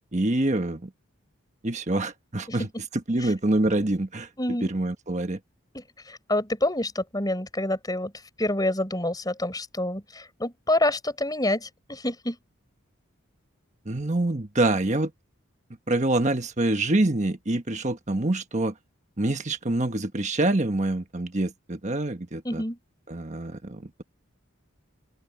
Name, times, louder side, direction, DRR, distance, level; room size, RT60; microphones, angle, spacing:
voice 1, 0.1-0.9 1.6-2.7 3.1-4.3 4.6-5.4 13.9-15.1 15.9-18.7 19.2-22.6 23.1-24.0, right 2 dB, 35° right, 1.3 m, -26 dB
voice 2, 2.5-2.8 3.2-3.3 4.4-4.7 5.7-8.1 8.4-12.4 22.4-22.8, left 1 dB, 20° left, 5.1 m, -27 dB
open air
head